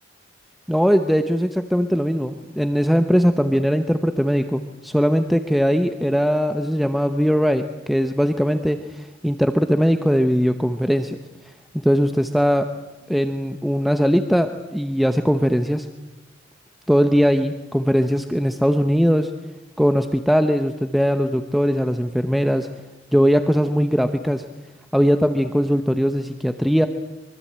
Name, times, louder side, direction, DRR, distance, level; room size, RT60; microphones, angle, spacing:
voice 1, 0.7-11.2 11.7-12.7 13.1-15.9 16.9-19.3 19.8-22.7 23.1-24.4 24.9-26.9, equal, ahead, 7 dB, 0.9 m, -20 dB
24.5 x 24.0 x 8.8 m, 1.1 s
head